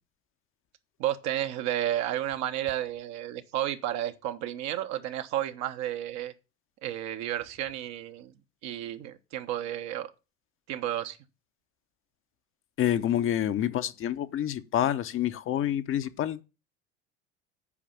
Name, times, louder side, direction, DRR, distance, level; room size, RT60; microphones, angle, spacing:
voice 1, 1.0-6.3 6.8-8.3 8.6-10.1 10.7-11.2, right 12 dB, 55° right, 1.1 m, -32 dB
voice 2, 12.8-16.4, left 11 dB, 40° left, 0.8 m, -28 dB
8.5 x 5.0 x 7.0 m
hypercardioid pair, 75°, 33 cm